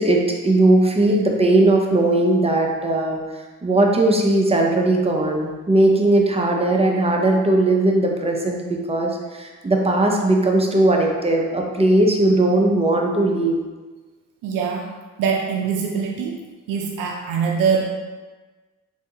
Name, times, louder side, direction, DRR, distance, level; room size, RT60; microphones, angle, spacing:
voice 1, 0.0-3.2 3.6-13.6, right 2 dB, 20° right, 0 dB, 0.6 m, -18 dB
voice 2, 14.4-14.9 15.2-16.4 16.7-17.8, right 6 dB, 75° right, 0 dB, 0.5 m, -23 dB
3.3 x 2.7 x 2.7 m, 1.3 s
supercardioid pair, 55°, 33 cm